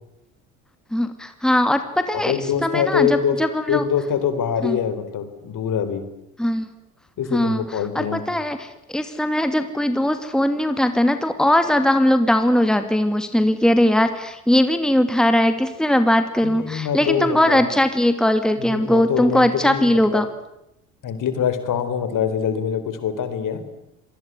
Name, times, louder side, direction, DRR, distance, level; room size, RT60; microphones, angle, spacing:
voice 1, 0.9-3.8 4.6-4.8 6.4-6.7 7.3-7.6 7.9-20.3, left 1 dB, ahead, 8 dB, 2.4 m, -20 dB
voice 2, 2.1-3.4 3.7-6.0 7.2-8.2 16.4-17.7 18.6-20.2 21.0-23.6, left 8 dB, 50° left, 11 dB, 4.3 m, -24 dB
26.0 x 20.0 x 9.6 m, 0.83 s
hypercardioid pair, 65°, 40 cm